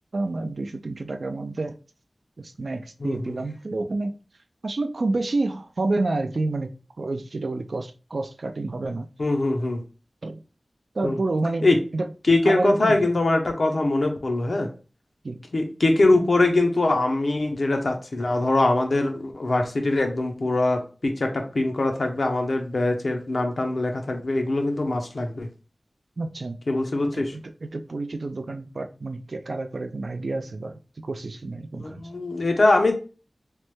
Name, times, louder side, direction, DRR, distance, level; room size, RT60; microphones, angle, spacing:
voice 1, 0.1-1.8 2.4-4.1 4.6-9.1 10.2-10.4 10.9-11.7 11.9-12.1 12.4-13.0 15.2-15.5 26.2-26.6 27.1-32.0, right 2 dB, 75° right, 0.3 m, -29 dB
voice 2, 3.0-3.3 9.2-9.8 11.0-11.2 11.6-11.8 12.3-14.7 15.5-25.5 26.7-27.3 31.8-32.9, left 2 dB, 75° left, 0.6 m, -22 dB
3.2 x 2.1 x 3.0 m
wide cardioid pair, 65°, 0 cm